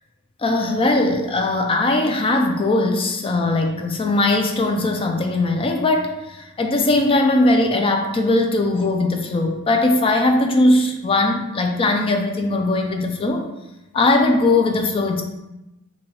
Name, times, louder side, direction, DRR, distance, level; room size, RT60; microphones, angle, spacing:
voice 1, 0.4-13.5 13.9-15.2, left 2 dB, 25° left, 4 dB, 0.3 m, -19 dB
4.1 x 2.7 x 3.0 m, 0.96 s
head